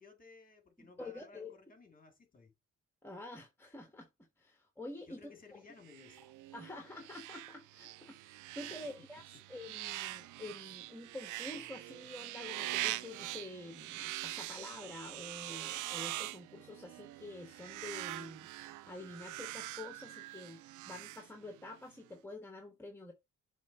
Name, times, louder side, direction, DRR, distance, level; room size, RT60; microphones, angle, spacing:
voice 1, 0.0-2.5 5.1-6.2, left 4 dB, 30° left, 2.4 m, -57 dB
voice 2, 0.8-1.6 3.0-4.1 4.4-5.3 6.5-18.5 18.9-23.1, left 2 dB, 5° left, 1.3 m, -48 dB
sound 1, 5.8-21.8, right 16 dB, 85° right, 0.5 m, -43 dB
7.2 x 3.3 x 5.3 m
cardioid pair, 90°, 30 cm